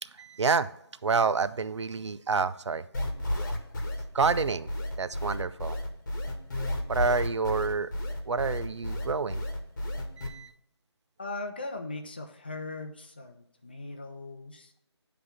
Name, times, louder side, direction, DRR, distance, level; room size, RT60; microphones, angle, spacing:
voice 1, 0.0-0.7 1.0-2.9 4.1-4.7 5.0-5.8 6.9-7.9 8.3-9.4 10.2-10.5, right 5 dB, 85° right, 13 dB, 0.5 m, -28 dB
sound 1, 2.9-10.3, left 1 dB, 40° left, 1.1 m, -32 dB
voice 2, 11.2-14.7, left 2 dB, 20° left, 5 dB, 0.5 m, -39 dB
9.4 x 3.4 x 5.8 m, 0.78 s
figure-of-eight pair, 175°, 14 cm